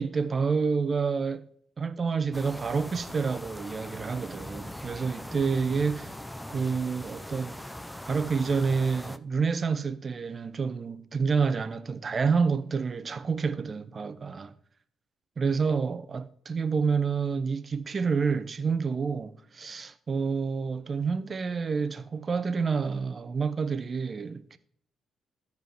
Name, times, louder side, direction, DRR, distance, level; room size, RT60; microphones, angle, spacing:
voice 1, 0.0-1.5 1.8-6.1 6.5-7.6 8.1-14.5 15.4-24.6, right 5 dB, 45° right, 0.7 m, -28 dB
sound 1, 2.3-9.2, left 1 dB, 10° left, 0.6 m, -41 dB
14.0 x 4.7 x 3.4 m
hypercardioid pair, 45°, 0 cm